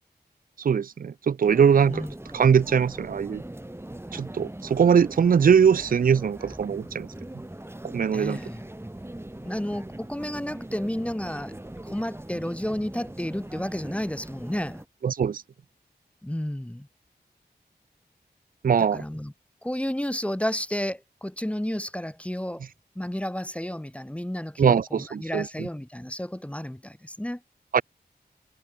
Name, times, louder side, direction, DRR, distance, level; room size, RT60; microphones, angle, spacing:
voice 1, 0.6-2.0 2.3-3.4 4.1-7.1 7.9-8.4 15.0-15.4 18.6-19.0 24.6-25.7 27.7-27.8, right 7 dB, 60° right, 0.4 m, -21 dB
sound 1, 1.4-14.9, right 1 dB, 15° right, 1.8 m, -41 dB
voice 2, 8.1-8.6 9.4-11.6 11.8-14.8 16.2-16.9 18.9-19.3 19.6-22.6 23.0-27.4, left 1 dB, 5° left, 0.8 m, -31 dB
wide cardioid pair, 80°, 17 cm